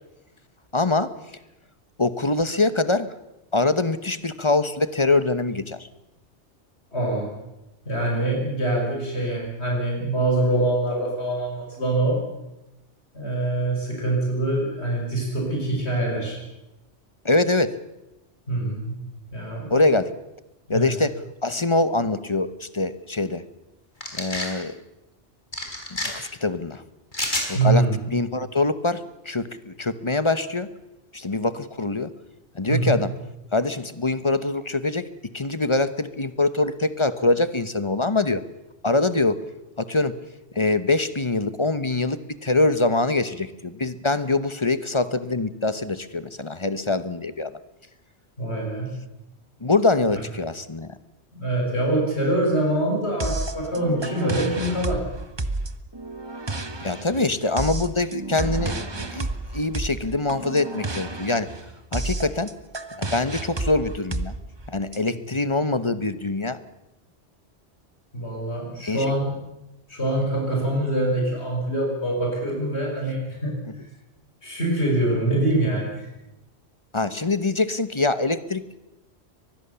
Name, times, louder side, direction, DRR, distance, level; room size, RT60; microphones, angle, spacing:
voice 1, 0.7-1.1 2.0-3.1 3.5-5.9 17.2-17.8 19.7-20.1 20.7-23.4 24.1-24.8 26.0-26.8 27.5-30.7 31.1-32.1 32.5-33.1 33.5-35.0 35.3-38.4 38.8-39.4 39.8-40.2 40.5-47.5 49.6-50.9 56.8-59.3 59.5-61.5 61.9-62.5 63.0-64.3 64.7-66.6 68.8-69.1 76.9-78.8, left 2 dB, 25° left, 13 dB, 1.0 m, -24 dB
voice 2, 6.9-7.3 7.9-12.2 13.1-16.4 18.5-19.0 19.3-19.8 20.7-20.9 27.5-28.0 32.7-33.0 48.4-48.9 51.3-55.0 68.1-69.3 69.9-73.6 74.4-76.1, right 1 dB, 65° left, -1 dB, 6.1 m, -24 dB
sound 1, 24.0-24.5 25.5-26.1 27.1-27.5, left 1 dB, 45° left, 4.7 m, -28 dB
sound 2, 53.2-65.0, right 2 dB, 25° right, 1.1 m, -31 dB
24.5 x 20.5 x 7.0 m, 0.95 s
omnidirectional pair, 1.2 m